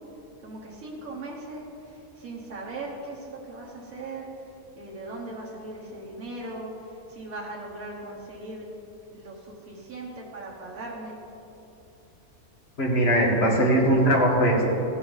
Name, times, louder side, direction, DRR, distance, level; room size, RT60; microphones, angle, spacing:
voice 1, 0.4-1.6 1.9-4.3 4.7-6.7 7.1-8.6 9.1-11.2, right 2 dB, 85° right, -4 dB, 1.7 m, -39 dB
voice 2, 12.8-14.6, right 1 dB, 45° left, -3 dB, 2.0 m, -20 dB
16.0 x 6.4 x 4.0 m, 2.9 s
omnidirectional pair, 1.4 m